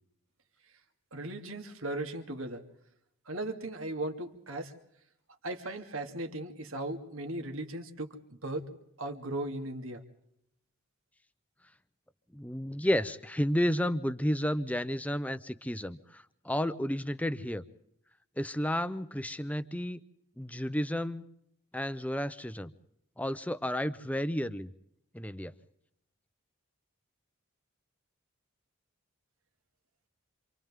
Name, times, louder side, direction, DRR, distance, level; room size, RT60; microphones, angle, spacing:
voice 1, 1.1-2.6 3.3-4.7 5.4-8.2 8.4-8.7 9.0-10.0, right 1 dB, 70° right, 5 dB, 2.5 m, -37 dB
voice 2, 12.3-17.6 18.4-20.0 20.4-21.2 21.7-22.7 23.2-24.7 25.1-25.5, equal, 5° left, 13 dB, 0.7 m, -32 dB
28.0 x 27.5 x 3.7 m, 0.75 s
head